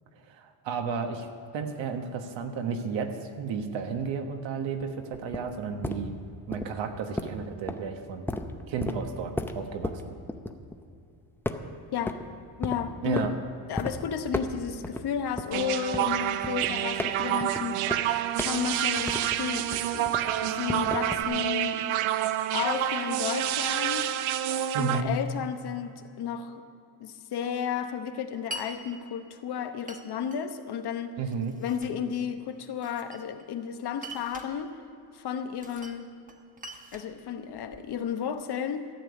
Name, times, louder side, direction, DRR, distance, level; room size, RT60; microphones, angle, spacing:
voice 1, 0.3-1.3 1.5-6.1 6.5-8.3 8.7-10.1 13.0-13.3 24.7-25.1 31.2-31.6, right 5 dB, 65° right, 6 dB, 1.4 m, -33 dB
sound 1, 4.7-11.1 11.4-12.3 12.6-13.3 13.8-13.9 14.3-15.0 15.4-19.5 19.7-21.2, left 2 dB, 5° left, 0.5 m, -34 dB
voice 2, 11.9-12.2 12.6-18.1 18.4-20.1 20.4-21.8 22.5-24.1 24.8-26.6 27.0-31.1 31.6-34.7 35.1-36.1 36.9-38.9, left 8 dB, 55° left, 8 dB, 1.0 m, -33 dB
sound 2, 15.5-25.0, right 12 dB, 80° right, 0.7 m, -28 dB
Glass, 28.5-28.7 29.9-30.4 31.3-32.0 32.8-33.5 34.0-34.5 35.6-36.0 36.3-37.9, right 1 dB, 15° right, 1.0 m, -43 dB
13.5 x 6.9 x 9.4 m, 2.6 s
cardioid pair, 135°, 48 cm